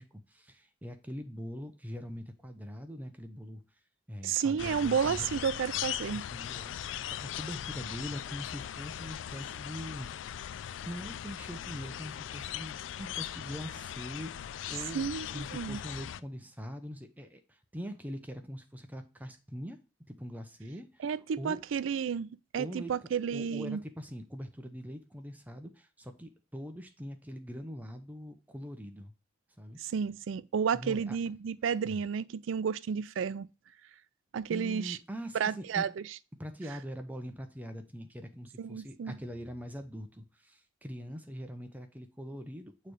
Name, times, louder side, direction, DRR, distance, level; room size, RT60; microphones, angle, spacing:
voice 1, 0.0-3.6 4.1-5.3 6.0-10.1 10.8-19.8 20.1-21.0 21.4-21.6 22.6-29.1 29.6-29.8 30.7-31.2 31.8-32.0 34.5-35.9 36.4-42.9, equal, 10° right, 0.7 m, -43 dB
voice 2, 4.2-6.2 14.9-15.8 21.0-23.8 29.8-33.5 34.3-35.0 35.3-35.9 38.6-39.2, right 7 dB, 85° right, 0.4 m, -31 dB
sound 1, 4.6-16.2, left 10 dB, 75° left, 0.3 m, -39 dB
6.6 x 3.2 x 4.9 m
head